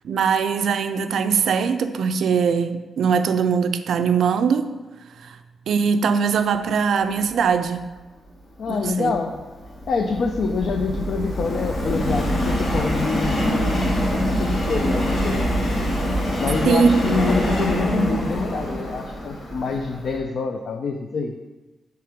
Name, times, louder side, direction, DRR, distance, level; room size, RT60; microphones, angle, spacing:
voice 1, 0.0-4.7 5.2-5.4 5.7-7.9 8.7-9.1 16.7-17.2, right 6 dB, 70° right, 9 dB, 0.3 m, -21 dB
voice 2, 8.6-9.4 9.9-15.7 16.4-21.3, left 4 dB, 55° left, 4 dB, 0.3 m, -26 dB
Subway metro underground, 8.9-20.2, equal, 35° left, 0.9 m, -24 dB
5.8 x 3.4 x 5.0 m, 1.2 s
wide cardioid pair, 170°, 0 cm